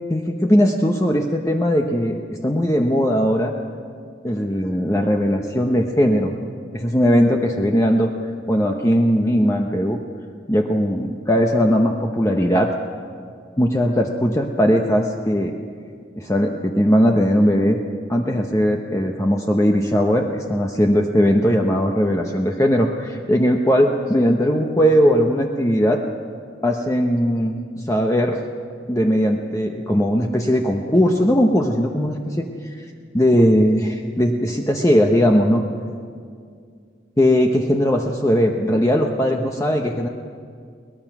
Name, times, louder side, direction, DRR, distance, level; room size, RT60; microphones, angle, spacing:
voice 1, 0.1-3.5 4.2-6.3 6.7-8.1 8.5-10.0 10.5-12.7 13.6-15.6 16.2-17.8 18.1-26.0 26.6-28.4 28.9-32.8 33.1-35.6 37.2-40.1, equal, 15° left, 2 dB, 0.8 m, -19 dB
22.5 x 19.0 x 6.0 m, 2.2 s
head